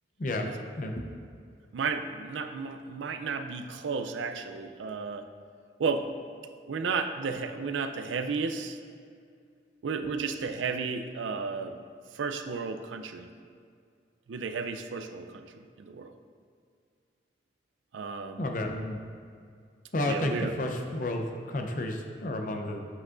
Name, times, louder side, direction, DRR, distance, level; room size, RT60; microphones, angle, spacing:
voice 1, 0.8-1.1 18.4-19.0 19.9-22.9, left 1 dB, 45° left, 3 dB, 0.6 m, -31 dB
voice 2, 1.7-5.3 5.8-6.1 6.7-8.8 9.8-11.8 12.1-13.3 14.3-15.5 15.8-16.1 17.9-18.5 20.1-20.5, right 5 dB, 85° right, 8 dB, 0.4 m, -33 dB
7.7 x 6.0 x 2.5 m, 2.2 s
head